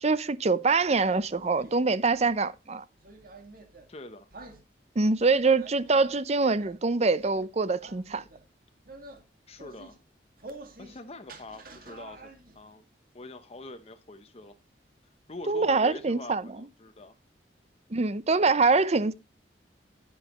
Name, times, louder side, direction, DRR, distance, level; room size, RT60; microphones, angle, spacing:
voice 1, 0.0-2.8 5.0-8.2 15.5-16.4 17.9-19.1, right 3 dB, 35° right, 0.6 m, -24 dB
sound 1, 0.9-2.4 3.0-3.9 4.3-4.6 5.1-6.2 6.6-6.8 7.2-7.5 7.8-8.5 8.9-9.2 9.5-10.0 10.4-11.0 11.3-12.6, right 2 dB, 55° right, 2.0 m, -48 dB
voice 2, 3.9-4.3 9.5-10.0 10.8-12.8 13.1-14.6 15.3-17.1 18.7-18.8, left 2 dB, 35° left, 0.8 m, -44 dB
10.0 x 10.0 x 3.0 m
head